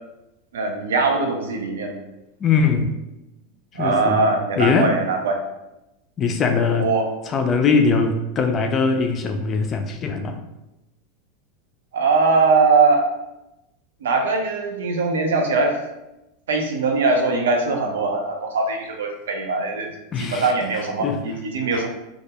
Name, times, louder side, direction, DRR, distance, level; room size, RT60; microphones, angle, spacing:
voice 1, 0.5-1.9 3.7-5.4 6.8-7.1 11.9-13.1 14.0-15.8 16.5-21.9, right 3 dB, 85° right, 4 dB, 0.4 m, -21 dB
voice 2, 2.4-3.0 3.7-4.3 4.6-4.9 6.2-6.9 7.3-10.4 20.1-20.5 21.0-21.2 21.7-21.9, left 5 dB, 35° left, 5 dB, 0.4 m, -21 dB
2.3 x 2.1 x 2.8 m, 0.95 s
hypercardioid pair, 105°, 0 cm